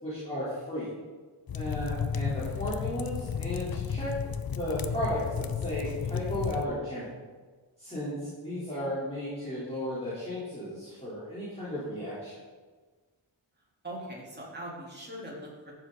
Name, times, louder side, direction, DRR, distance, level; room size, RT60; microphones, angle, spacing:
voice 1, 0.0-0.9 1.5-4.1 4.6-7.1 7.8-12.4, equal, 15° left, -11 dB, 3.9 m, -34 dB
sound 1, 1.5-6.7, left 7 dB, 50° left, 0.6 m, -33 dB
voice 2, 13.8-15.7, right 1 dB, 20° right, -5 dB, 3.7 m, -41 dB
15.0 x 7.7 x 4.1 m, 1.4 s
wide cardioid pair, 105°, 47 cm